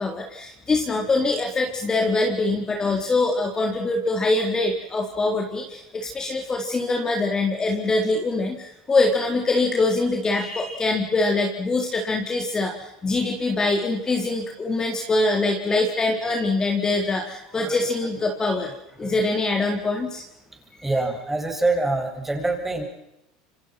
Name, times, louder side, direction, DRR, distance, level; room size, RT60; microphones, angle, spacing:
voice 1, 0.0-18.7 19.0-20.2, left 2 dB, 20° left, 2 dB, 4.2 m, -23 dB
voice 2, 17.5-17.8 18.6-19.3 20.8-22.8, right 2 dB, 10° right, 4 dB, 7.1 m, -26 dB
28.0 x 25.0 x 6.0 m, 0.88 s
supercardioid pair, 100°, 3 cm